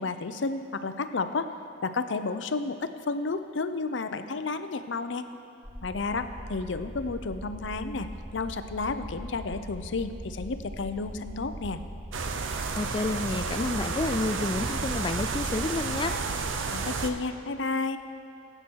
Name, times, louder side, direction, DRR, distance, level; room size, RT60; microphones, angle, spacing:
voice 1, 0.0-1.5 1.8-5.3 5.8-8.1 8.3-11.8 16.7-18.0, left 3 dB, 70° left, 10 dB, 0.6 m, -31 dB
sound 1, 5.6-12.3, equal, 10° right, 2.9 m, -41 dB
sound 2, 12.1-17.1, right 4 dB, 90° right, 0.8 m, -31 dB
voice 2, 12.5-16.1, left 3 dB, 25° left, 7 dB, 0.3 m, -30 dB
19.5 x 8.8 x 4.6 m, 2.4 s
head